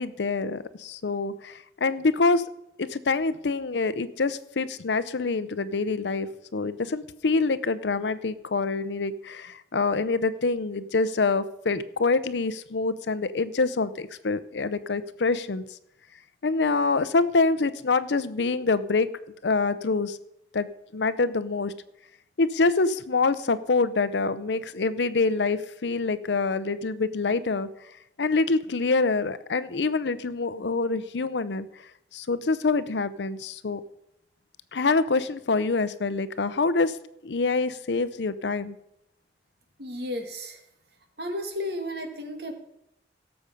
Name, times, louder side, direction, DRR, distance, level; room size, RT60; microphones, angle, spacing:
voice 1, 0.0-2.4 2.8-6.3 6.5-15.6 16.4-19.1 19.4-20.2 20.5-20.7 20.9-21.7 22.4-27.7 28.2-31.7 32.1-33.8 34.7-37.0 37.2-38.8, left 3 dB, 80° left, 15 dB, 0.7 m, -26 dB
voice 2, 39.8-40.6 41.2-42.5, left 1 dB, 65° right, 5 dB, 1.9 m, -33 dB
17.0 x 7.1 x 5.3 m, 0.82 s
head